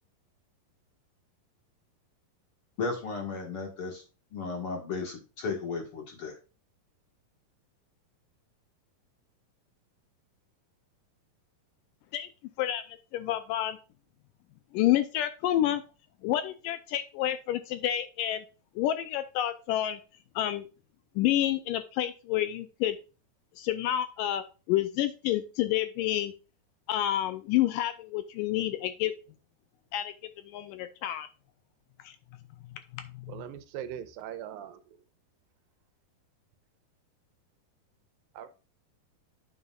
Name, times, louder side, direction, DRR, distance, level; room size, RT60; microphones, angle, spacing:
voice 1, 2.8-4.0 4.3-6.4, left 4 dB, 50° left, 2 dB, 1.8 m, -34 dB
voice 2, 12.6-13.8 14.7-15.8 16.2-18.5 18.8-20.0 20.4-20.7 21.2-23.0 23.6-26.3 26.9-29.1 29.9-30.1 30.4-31.3 32.0-32.2 32.6-33.4, left 12 dB, 80° left, 11 dB, 2.1 m, -29 dB
voice 3, 33.3-35.0 38.3-38.5, right 10 dB, 80° right, 12 dB, 2.4 m, -40 dB
9.1 x 6.6 x 2.4 m, 0.33 s
omnidirectional pair, 4.2 m